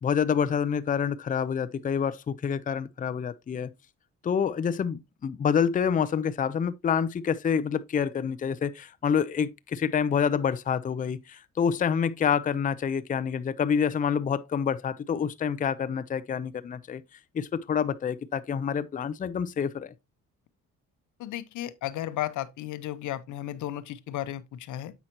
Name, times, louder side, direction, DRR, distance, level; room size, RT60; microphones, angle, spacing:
voice 1, 0.0-3.7 4.2-17.0 17.3-19.9, left 7 dB, 25° left, 0.5 m, -27 dB
voice 2, 21.2-24.9, left 13 dB, 80° left, 0.7 m, -34 dB
7.9 x 5.6 x 2.9 m
cardioid pair, 90°, 30 cm